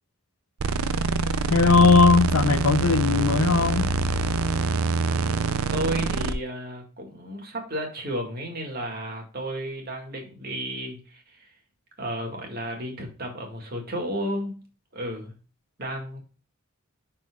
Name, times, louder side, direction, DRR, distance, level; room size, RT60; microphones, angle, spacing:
sound 1, 0.6-6.3, right 4 dB, 85° right, 0.5 m, -25 dB
voice 1, 1.5-3.9, left 4 dB, 85° left, 0.6 m, -18 dB
voice 2, 5.0-11.5 12.0-14.6 14.9-15.3 15.8-16.2, equal, 45° right, 2.0 m, -33 dB
10.5 x 4.4 x 2.4 m
head